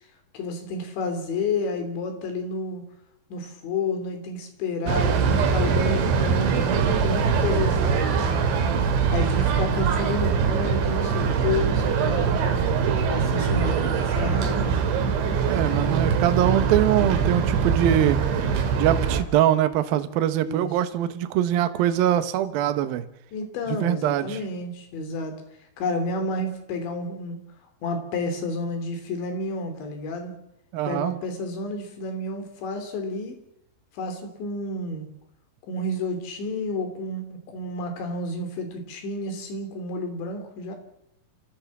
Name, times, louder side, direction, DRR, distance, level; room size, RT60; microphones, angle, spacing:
voice 1, 0.3-2.8 3.3-8.6 9.1-12.6 13.0-14.9 20.4-20.7 23.3-25.4 25.8-27.4 27.8-30.3 30.9-33.4 33.9-35.1 35.7-40.8, left 2 dB, 80° left, 6 dB, 5.5 m, -30 dB
sound 1, 4.9-19.2, right 6 dB, 85° right, 4.5 m, -23 dB
voice 2, 15.5-18.2 18.8-23.1 23.8-24.4 30.7-31.1, right 11 dB, 65° right, 11 dB, 2.7 m, -23 dB
29.0 x 15.0 x 7.4 m, 0.80 s
omnidirectional pair, 5.1 m